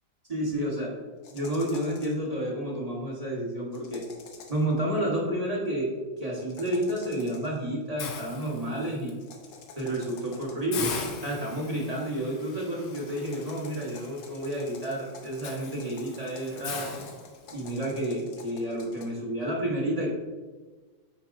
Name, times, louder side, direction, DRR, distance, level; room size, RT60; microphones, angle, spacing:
voice 1, 0.3-0.9 1.3-4.0 4.5-5.9 6.2-9.1 9.8-10.9 11.2-16.9 17.5-20.1, right 1 dB, 25° right, -4 dB, 1.0 m, -30 dB
sound 1, 1.2-2.3 3.7-4.7 6.4-7.6 9.2-10.8 12.8-19.0, left 4 dB, 70° left, 1.5 m, -49 dB
Hiss, 8.0-9.1 9.6-9.8 10.1-10.2 10.7-17.8, left 5 dB, 85° left, 1.6 m, -40 dB
8.8 x 4.3 x 2.6 m, 1.3 s
omnidirectional pair, 2.2 m